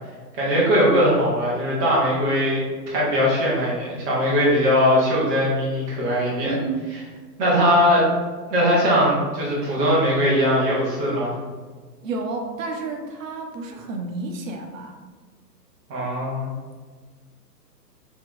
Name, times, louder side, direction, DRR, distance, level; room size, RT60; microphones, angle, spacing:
voice 1, 0.4-2.6 2.9-6.6 7.4-8.1 8.5-11.3 15.9-16.5, equal, 10° right, -5 dB, 0.5 m, -20 dB
voice 2, 6.4-7.0 12.0-15.0, right 3 dB, 50° right, 3 dB, 0.9 m, -30 dB
4.5 x 2.8 x 3.7 m, 1.4 s
hypercardioid pair, 130°, 50 cm